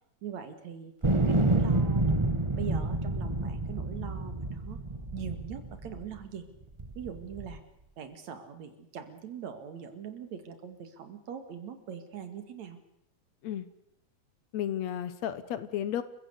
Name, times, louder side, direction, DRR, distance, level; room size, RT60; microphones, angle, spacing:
voice 1, 0.2-0.9 1.2-4.8 5.1-6.4 6.9-7.6 8.0-12.8, right 8 dB, 65° right, 9 dB, 3.2 m, -41 dB
sound 1, 1.0-6.2 6.8-7.6, right 2 dB, 25° right, 0.7 m, -28 dB
voice 2, 14.5-16.0, left 10 dB, 70° left, 13 dB, 2.2 m, -33 dB
29.5 x 15.5 x 8.2 m, 0.78 s
omnidirectional pair, 3.4 m